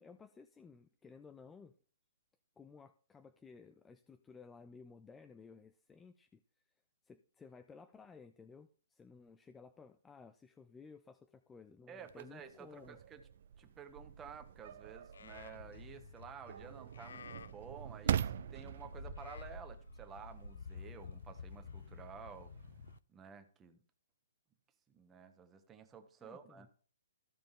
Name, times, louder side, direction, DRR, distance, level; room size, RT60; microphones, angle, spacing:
voice 1, 0.0-1.8 2.6-6.4 7.0-13.0 26.2-26.7, left 5 dB, 10° left, 0.5 m, -56 dB
voice 2, 11.9-13.2 13.6-22.5 23.1-23.8 24.9-26.7, right 7 dB, 15° right, 1.3 m, -52 dB
sound 1, 12.0-23.0, right 9 dB, 55° right, 0.5 m, -44 dB
Livestock farm animals working animals, 15.1-23.0, left 6 dB, 75° left, 0.4 m, -52 dB
15.0 x 5.0 x 3.7 m
hypercardioid pair, 145°, 0 cm